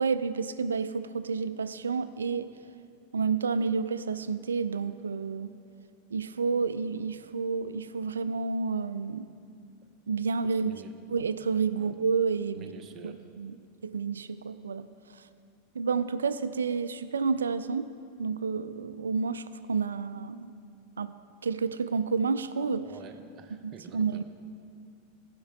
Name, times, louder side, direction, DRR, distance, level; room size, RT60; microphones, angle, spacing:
voice 1, 0.0-2.5 3.1-5.5 6.1-9.3 10.1-10.8 11.1-12.7 13.0-13.6 13.8-15.3 15.7-17.9 18.2-20.5 21.0-21.1 21.4-22.9 23.6-24.2, right 5 dB, 80° right, 13 dB, 0.3 m, -30 dB
voice 2, 10.5-10.9 11.7-11.9 12.5-13.2 22.8-24.2, right 6 dB, 35° right, 6 dB, 0.8 m, -48 dB
15.0 x 5.3 x 3.6 m, 2.4 s
figure-of-eight pair, 90°, 0 cm